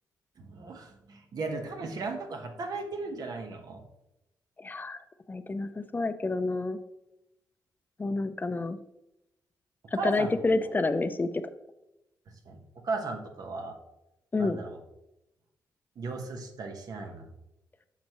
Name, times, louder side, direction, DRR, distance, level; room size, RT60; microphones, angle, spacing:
voice 1, 0.4-3.8 9.9-10.4 12.5-13.8 14.4-14.8 16.0-17.3, right 3 dB, 65° right, 4 dB, 1.2 m, -36 dB
voice 2, 4.6-6.8 8.0-8.8 9.9-11.4 14.3-14.6, left 3 dB, 25° left, 10 dB, 0.6 m, -29 dB
8.5 x 5.9 x 3.0 m, 0.89 s
cardioid pair, 75°, 7 cm